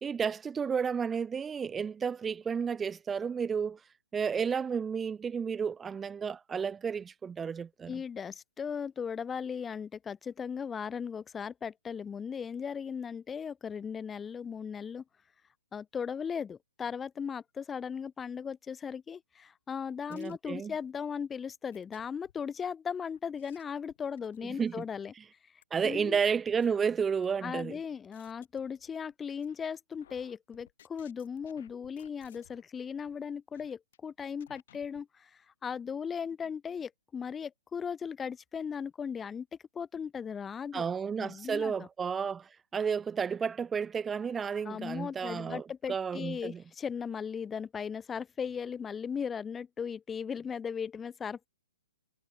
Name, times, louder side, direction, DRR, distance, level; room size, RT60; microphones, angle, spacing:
voice 1, 0.0-3.8 4.1-8.0 20.1-20.7 24.6-24.8 25.7-27.8 40.7-46.6, right 6 dB, 15° right, 0.4 m, -32 dB
voice 2, 7.9-15.0 15.7-25.1 25.8-26.2 27.4-35.3 35.6-39.5 39.7-40.8 41.2-41.9 44.6-51.5, left 7 dB, 15° left, 0.9 m, -37 dB
sound 1, 20.1-20.9 21.7-22.6 23.1-25.0 25.6-25.7 26.2-27.2 27.7-29.1 29.4-29.8 30.0-32.7 33.0-33.1 33.5-34.0 34.4-35.0, left 11 dB, 55° left, 3.9 m, -61 dB
figure-of-eight pair, 125°, 0 cm